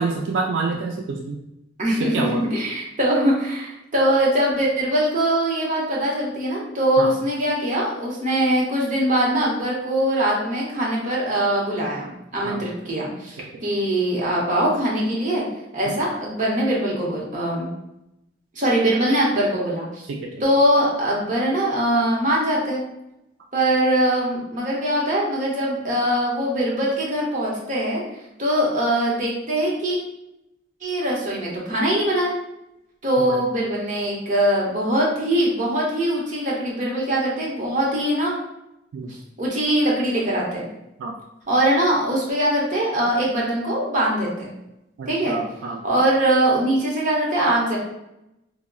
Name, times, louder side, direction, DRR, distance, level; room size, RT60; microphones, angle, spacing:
voice 1, 0.0-1.4 2.0-2.4 7.0-7.1 12.4-12.6 15.9-16.0 20.1-20.3 33.2-33.4 38.9-39.1 41.0-41.1 45.0-45.8, right 4 dB, 80° right, 0 dB, 0.3 m, -27 dB
voice 2, 1.8-15.4 15.7-17.7 18.5-20.0 20.4-22.8 23.5-28.0 28.4-30.0 30.8-32.3 33.0-38.3 39.4-40.6 41.5-44.5 45.1-45.4 45.8-47.8, right 1 dB, 40° right, -3 dB, 0.8 m, -22 dB
3.6 x 2.0 x 2.3 m, 0.88 s
head